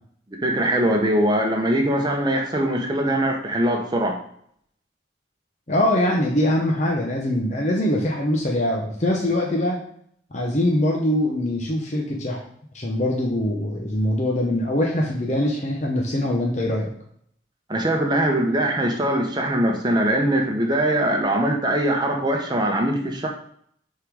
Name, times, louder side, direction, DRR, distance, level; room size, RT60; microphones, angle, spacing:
voice 1, 0.4-4.2 17.7-23.3, right 1 dB, 20° right, 1 dB, 0.9 m, -22 dB
voice 2, 5.7-9.8 10.3-12.4 12.7-16.9, left 1 dB, 35° left, -1 dB, 0.8 m, -23 dB
6.4 x 3.8 x 4.8 m, 0.66 s
head